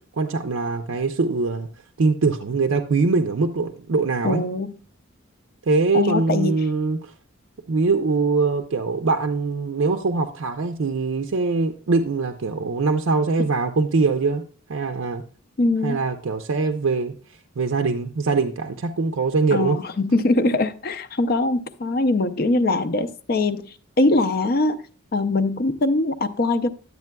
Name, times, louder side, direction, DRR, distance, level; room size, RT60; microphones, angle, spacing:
voice 1, 0.2-1.7 2.0-4.4 5.7-7.1 7.7-14.4 14.7-15.2 15.8-17.1 17.6-19.8, right 4 dB, 70° right, 0.5 m, -22 dB
voice 2, 4.2-4.7 5.9-6.6 15.6-16.0 19.5-23.6 24.0-24.8 25.1-26.7, left 2 dB, 45° left, 0.5 m, -22 dB
10.5 x 8.2 x 2.2 m
head